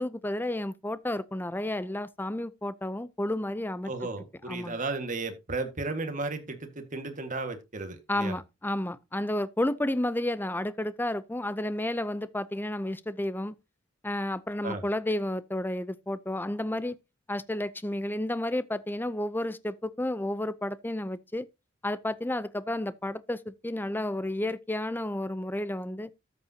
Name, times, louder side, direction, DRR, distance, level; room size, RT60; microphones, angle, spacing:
voice 1, 0.0-3.9 4.5-4.8 8.1-13.5 14.0-17.0 17.3-21.4 21.8-26.1, left 1 dB, 10° left, 0.6 m, -31 dB
voice 2, 3.9-8.4 14.6-14.8, right 3 dB, 40° right, 1.8 m, -34 dB
13.0 x 8.5 x 2.8 m
head